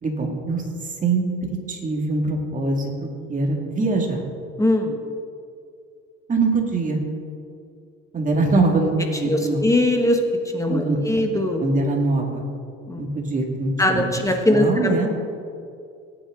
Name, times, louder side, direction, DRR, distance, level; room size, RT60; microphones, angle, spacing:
voice 1, 0.0-1.2 1.7-4.2 6.3-7.0 8.1-9.7 10.7-11.0 11.6-12.4 13.0-14.2 14.5-15.1, right 3 dB, 25° right, 1 dB, 2.2 m, -23 dB
voice 2, 4.6-5.0 9.2-10.2 10.5-11.6 12.9-13.0 13.8-14.9, left 1 dB, 10° left, 3 dB, 1.3 m, -20 dB
19.0 x 8.9 x 3.8 m, 2.4 s
cardioid pair, 120°, 29 cm